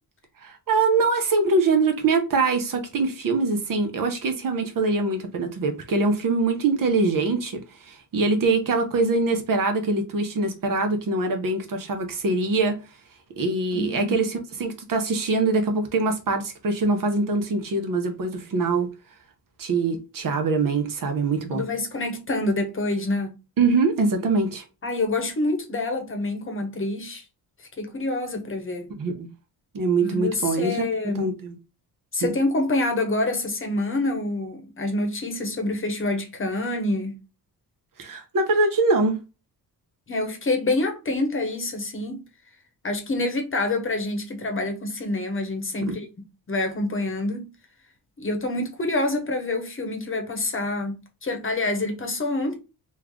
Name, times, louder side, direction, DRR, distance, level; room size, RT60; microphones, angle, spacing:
voice 1, 0.4-12.8 13.4-18.9 19.6-21.6 23.6-24.6 29.0-29.3 29.7-30.8 31.1-31.5 32.2-32.3 38.0-39.2 45.9-46.0, right 3 dB, 55° right, 0.9 m, -23 dB
voice 2, 13.7-14.2 21.5-23.3 24.8-27.3 27.6-28.9 30.0-31.3 32.1-37.1 40.1-42.2 42.8-46.1 46.5-47.5 48.2-50.9 51.2-52.5, left 2 dB, 30° left, 1.0 m, -27 dB
3.2 x 2.4 x 3.7 m
cardioid pair, 100°, 40 cm